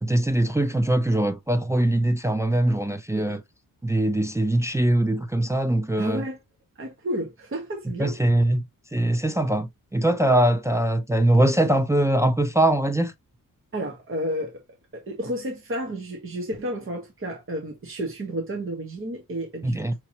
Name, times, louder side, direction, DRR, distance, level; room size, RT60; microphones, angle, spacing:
voice 1, 0.0-3.4 3.8-6.2 8.0-8.6 8.9-13.1 19.6-20.0, right 1 dB, 10° right, 0.4 m, -22 dB
voice 2, 3.1-3.4 6.0-6.4 6.8-8.2 13.7-14.6 14.9-20.0, equal, 35° right, 1.2 m, -31 dB
5.7 x 3.0 x 2.8 m
cardioid pair, 105°, 34 cm